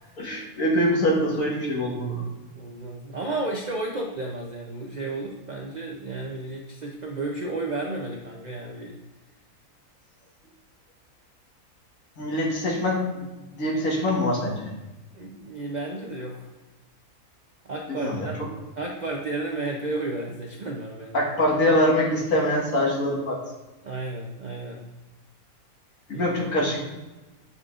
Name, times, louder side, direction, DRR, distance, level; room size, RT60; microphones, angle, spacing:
voice 1, 0.2-2.3 12.2-14.7 17.9-18.3 21.1-23.4 26.1-26.8, left 1 dB, 65° left, -3 dB, 1.8 m, -24 dB
voice 2, 2.5-9.0 15.1-16.5 17.6-21.3 23.8-24.8 26.1-26.4, right 2 dB, 55° right, 0 dB, 0.4 m, -33 dB
8.2 x 4.9 x 2.4 m, 1.1 s
omnidirectional pair, 1.5 m